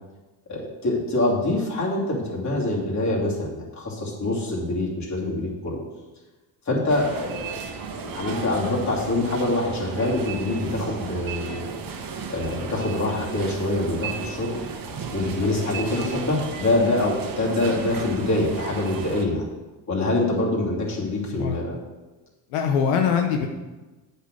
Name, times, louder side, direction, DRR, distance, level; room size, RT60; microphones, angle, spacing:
voice 1, 0.5-5.8 6.6-7.6 8.0-11.7 12.3-14.6 15.1-19.4 19.9-21.8, left 2 dB, 35° left, -4 dB, 2.9 m, -25 dB
sound 1, 6.9-19.2, right 5 dB, 45° right, 1.2 m, -34 dB
voice 2, 22.5-23.5, left 7 dB, 90° left, 3 dB, 0.9 m, -22 dB
8.1 x 4.5 x 6.4 m, 1.2 s
supercardioid pair, 90°, 48 cm